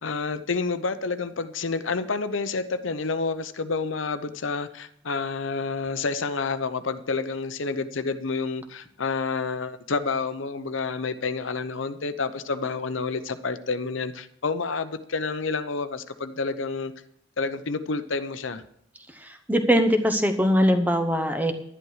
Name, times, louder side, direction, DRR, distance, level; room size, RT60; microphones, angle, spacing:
voice 1, 0.0-16.9 17.4-18.6, left 4 dB, 85° left, 11 dB, 0.8 m, -29 dB
voice 2, 19.1-21.5, equal, 10° right, 7 dB, 0.9 m, -22 dB
11.0 x 11.0 x 4.9 m, 0.71 s
head